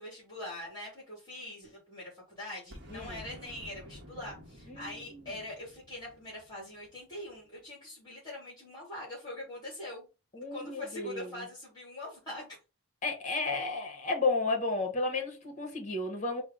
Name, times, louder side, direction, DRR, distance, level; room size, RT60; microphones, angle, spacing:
voice 1, 0.0-10.1 10.4-12.6, left 1 dB, 20° left, 2.0 m, -43 dB
Boom, 2.7-7.4, equal, 55° right, 0.8 m, -51 dB
voice 2, 4.7-5.3 10.3-11.3 13.0-16.4, left 3 dB, 35° left, 1.1 m, -32 dB
4.5 x 2.0 x 3.6 m
head